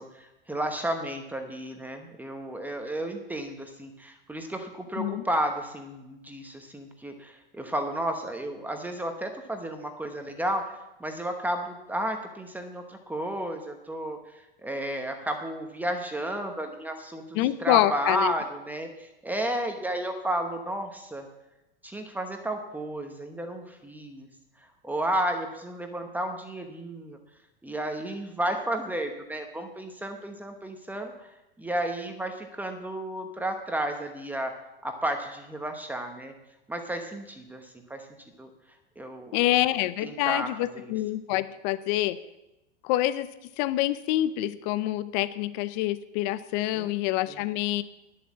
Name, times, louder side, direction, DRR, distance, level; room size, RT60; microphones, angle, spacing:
voice 1, 0.0-21.3 21.8-24.3 24.8-27.2 27.6-31.3 31.6-34.5 34.8-36.3 36.7-38.1 38.4-38.5 39.0-40.9 46.7-46.9 47.3-47.4, right 1 dB, 5° right, 5 dB, 1.0 m, -32 dB
voice 2, 17.3-18.3 39.3-42.2 42.8-43.3 43.6-47.8, left 15 dB, 50° left, 15 dB, 0.6 m, -26 dB
10.5 x 7.7 x 7.4 m, 0.95 s
supercardioid pair, 130°, 29 cm